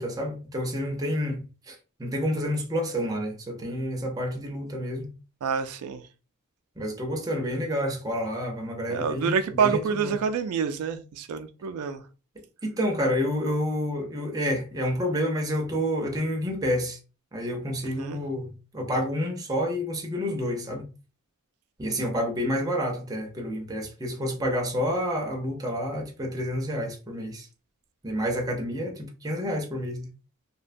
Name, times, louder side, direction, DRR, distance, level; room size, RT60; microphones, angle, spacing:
voice 1, 0.0-1.4 1.7-5.1 6.8-10.2 12.6-17.0 17.3-20.9 21.8-27.5 28.0-30.1, equal, 15° right, 0.5 m, -29 dB
voice 2, 5.4-6.0 8.9-12.0 18.0-18.2, right 6 dB, 80° right, 0.3 m, -27 dB
2.6 x 2.1 x 2.5 m
head